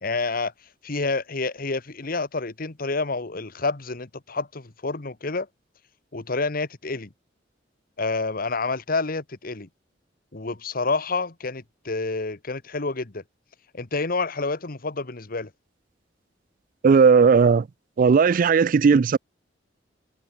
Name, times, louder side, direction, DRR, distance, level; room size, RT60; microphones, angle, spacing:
voice 1, 0.0-0.5 0.8-5.5 6.1-7.1 8.0-9.7 10.3-13.2 13.7-15.5, left 3 dB, 55° left, 1.4 m, -28 dB
voice 2, 16.8-17.7 18.0-19.2, right 5 dB, 50° right, 0.4 m, -16 dB
head